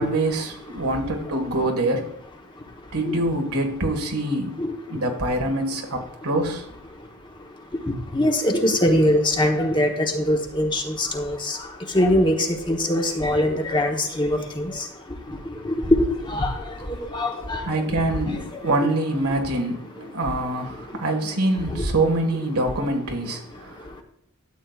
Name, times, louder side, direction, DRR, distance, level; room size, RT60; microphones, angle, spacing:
voice 1, 0.0-2.1 2.9-4.6 4.9-6.6 17.6-24.0, right 2 dB, 85° right, 1.8 m, -25 dB
voice 2, 8.1-11.6 11.9-14.8 15.3-16.0 16.2-17.6 18.3-18.4 18.8-18.9 21.7-21.8, left 1 dB, 20° left, 1.1 m, -22 dB
12.5 x 8.4 x 2.5 m
head